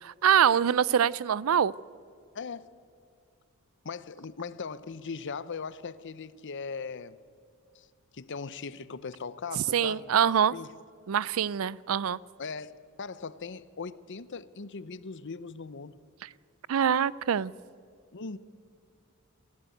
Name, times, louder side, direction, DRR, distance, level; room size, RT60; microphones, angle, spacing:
voice 1, 0.0-1.7 9.7-10.5 11.1-12.2 16.7-17.5, right 8 dB, 70° right, 0.4 m, -24 dB
voice 2, 2.3-2.7 3.8-7.2 7.7-7.9 8.1-10.7 12.4-16.0 18.1-18.4, left 5 dB, 55° left, 0.7 m, -39 dB
27.5 x 12.0 x 9.3 m
head